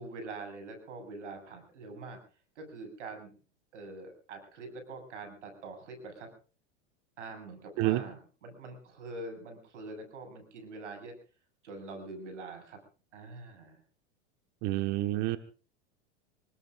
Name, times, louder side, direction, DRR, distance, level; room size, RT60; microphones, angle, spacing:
voice 1, 0.0-2.2 2.6-3.3 3.7-6.3 7.2-11.1 11.6-12.8 13.1-13.8, right 3 dB, 85° right, 6 dB, 7.6 m, -44 dB
voice 2, 14.6-15.4, right 16 dB, 50° right, 8 dB, 1.6 m, -28 dB
26.5 x 20.0 x 2.6 m, 0.38 s
hypercardioid pair, 105°, 35 cm